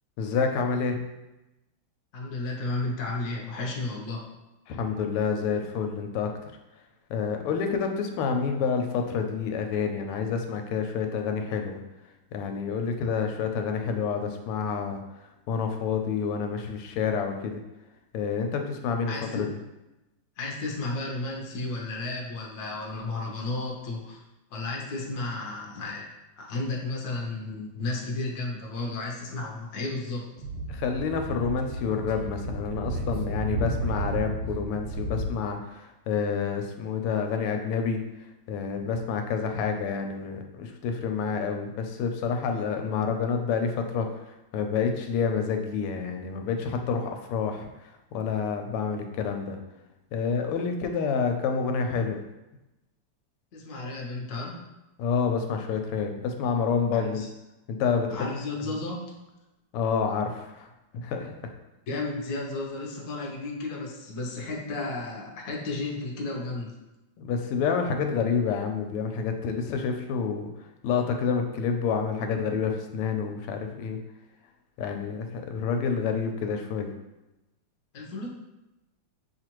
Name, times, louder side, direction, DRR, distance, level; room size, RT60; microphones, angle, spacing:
voice 1, 0.2-1.0 4.7-6.3 7.1-11.8 12.3-15.0 15.5-17.6 18.1-19.5 30.7-38.0 38.5-44.1 44.5-47.7 48.1-49.6 50.1-52.2 55.0-57.2 57.7-58.3 58.6-58.8 59.7-60.7 60.9-61.5 67.2-70.5 70.8-74.0 74.8-76.9, left 6 dB, 90° left, 5 dB, 1.5 m, -28 dB
voice 2, 2.1-4.3 19.1-19.5 20.4-24.2 24.5-26.1 26.4-30.2 53.5-54.6 56.9-57.3 58.1-59.1 61.9-66.8 77.9-78.3, left 2 dB, 60° left, -2 dB, 0.9 m, -33 dB
Speech / Wind, 30.4-35.3, right 1 dB, 90° right, 1.5 m, -32 dB
6.2 x 2.4 x 2.9 m, 0.98 s
omnidirectional pair, 2.4 m